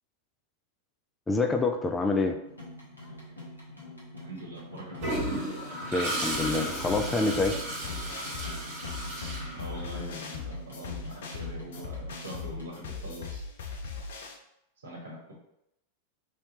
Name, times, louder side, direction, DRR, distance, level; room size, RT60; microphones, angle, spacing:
voice 1, 1.3-2.4 5.8-7.6, left 3 dB, 10° left, 4 dB, 0.3 m, -27 dB
sound 1, 2.4-12.8, left 1 dB, 80° left, 1.0 m, -45 dB
voice 2, 4.2-5.3 9.5-13.4 14.8-15.4, equal, 70° right, -3 dB, 1.1 m, -43 dB
Toilet flush, 5.0-10.1, right 1 dB, 50° right, 1.3 m, -34 dB
sound 2, 6.3-14.3, left 4 dB, 60° left, 0.5 m, -39 dB
3.3 x 2.7 x 2.8 m, 0.81 s
figure-of-eight pair, 90°, 0 cm